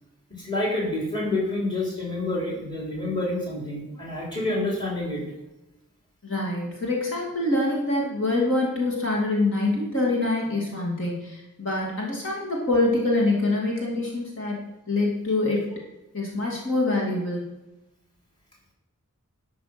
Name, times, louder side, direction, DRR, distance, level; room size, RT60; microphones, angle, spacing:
voice 1, 0.3-5.2, left 2 dB, 20° left, -3 dB, 3.5 m, -28 dB
voice 2, 6.2-14.6 14.9-15.7 16.1-17.5, left 2 dB, 60° left, -2 dB, 2.4 m, -25 dB
12.0 x 6.1 x 5.9 m, 0.98 s
head